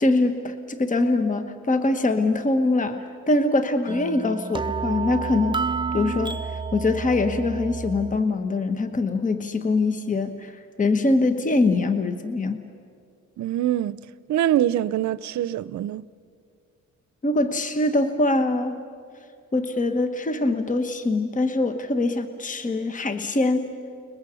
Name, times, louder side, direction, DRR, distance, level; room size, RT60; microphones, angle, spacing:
voice 1, 0.0-5.6 5.9-12.6 17.2-18.9 19.5-23.8, left 2 dB, 25° left, 1.2 m, -23 dB
sound 1, 3.9-8.2, right 5 dB, 15° right, 0.7 m, -30 dB
voice 2, 13.4-14.0 14.3-16.0, right 12 dB, 70° right, 0.7 m, -24 dB
30.0 x 21.5 x 7.1 m
cardioid pair, 90°, 30 cm